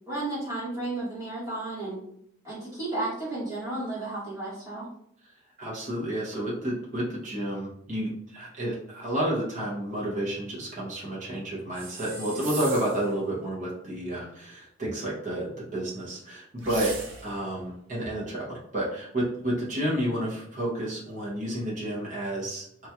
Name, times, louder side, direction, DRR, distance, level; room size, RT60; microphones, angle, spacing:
voice 1, 0.1-2.0 2.4-4.9, right 2 dB, 15° right, -10 dB, 1.5 m, -33 dB
voice 2, 5.6-16.9 17.2-22.9, right 1 dB, 40° right, -5 dB, 0.8 m, -30 dB
sound 1, 11.7-13.1 16.6-17.4, right 4 dB, 75° right, 0.6 m, -38 dB
3.0 x 2.8 x 2.3 m, 0.71 s
head